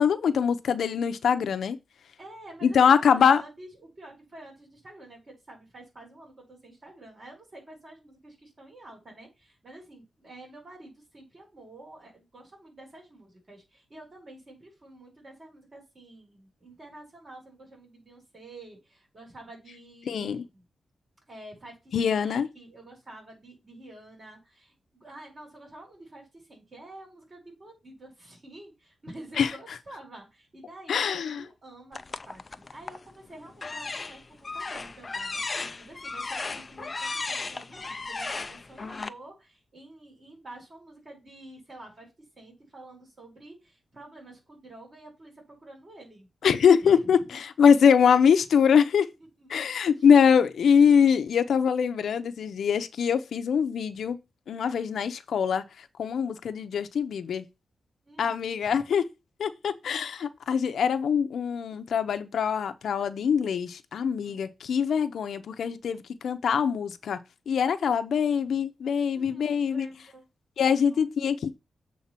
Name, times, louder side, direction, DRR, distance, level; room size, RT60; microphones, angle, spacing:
voice 1, 0.0-1.8 2.6-3.4 20.1-20.4 21.9-22.5 29.4-29.5 30.9-31.4 46.4-49.1 49.5-54.2 54.5-55.6 56.0-57.4 58.2-59.1 59.4-67.2 67.5-69.9 70.6-71.6, left 7 dB, 75° left, 0.7 m, -23 dB
voice 2, 2.2-20.6 21.3-32.0 32.2-42.1 42.4-46.3 46.8-47.2 49.2-49.5 50.0-50.1 58.0-58.8 64.1-64.4 69.1-70.3 70.6-71.0, right 1 dB, 30° right, 4.8 m, -49 dB
sound 1, 31.9-33.1 33.5-39.1, left 3 dB, 25° left, 0.4 m, -35 dB
7.4 x 3.9 x 5.8 m
wide cardioid pair, 180°, 0 cm